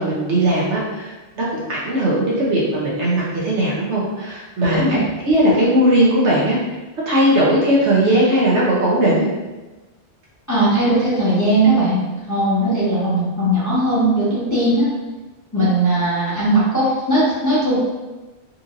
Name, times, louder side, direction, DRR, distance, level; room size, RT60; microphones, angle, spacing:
voice 1, 0.0-6.6 7.1-9.3, right 1 dB, 85° right, -6 dB, 1.2 m, -18 dB
voice 2, 4.7-5.0 10.5-14.9 15.5-17.8, right 1 dB, 15° left, -11 dB, 1.2 m, -18 dB
4.3 x 2.6 x 2.6 m, 1.1 s
omnidirectional pair, 1.1 m